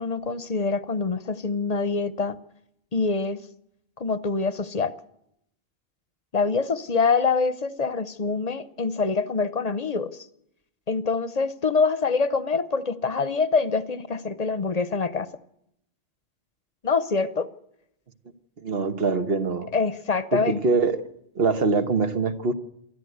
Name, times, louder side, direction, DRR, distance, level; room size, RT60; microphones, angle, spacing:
voice 1, 0.0-2.4 2.9-3.4 4.0-4.9 6.3-10.2 10.9-15.3 16.8-17.5 19.7-20.6, left 4 dB, 40° left, 15 dB, 0.9 m, -25 dB
voice 2, 18.6-19.7 20.3-21.0 21.3-22.5, right 4 dB, 60° right, 9 dB, 1.5 m, -23 dB
23.0 x 14.0 x 8.0 m, 0.78 s
omnidirectional pair, 1.1 m